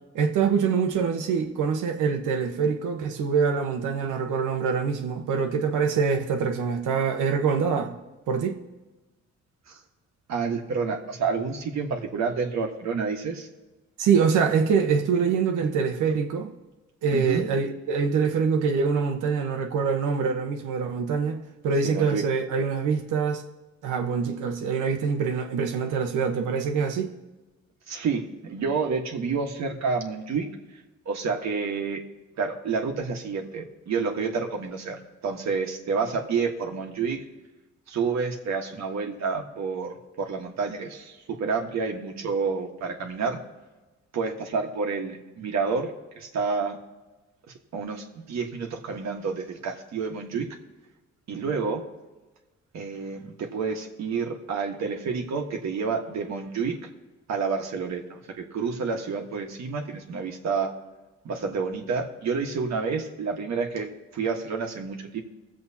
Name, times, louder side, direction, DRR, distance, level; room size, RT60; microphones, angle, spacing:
voice 1, 0.1-7.9 8.3-8.6 14.0-16.5 17.0-23.4 23.8-27.1, right 6 dB, 85° right, 1.2 m, -25 dB
voice 2, 10.3-13.5 17.1-17.5 21.8-22.2 27.9-30.5 31.0-32.0 32.4-37.2 37.9-43.4 44.1-45.9 46.2-46.8 47.5-50.5 51.3-51.8 52.7-56.8 57.3-60.7 61.2-65.2, right 5 dB, 65° right, 1.5 m, -29 dB
22.5 x 7.6 x 2.9 m
cardioid pair, 90°, 30 cm